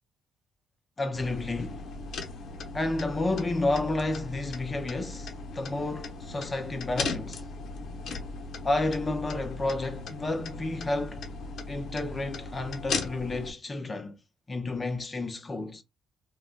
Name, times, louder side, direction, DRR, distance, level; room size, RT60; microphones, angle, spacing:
voice 1, 1.0-1.9 2.7-7.4 8.6-11.2 11.7-14.2 14.5-15.8, left 2 dB, 30° left, 0.5 m, -31 dB
sound 1, 1.1-13.5, left 3 dB, 65° left, 0.7 m, -37 dB
2.3 x 2.1 x 3.6 m
cardioid pair, 90°, 0 cm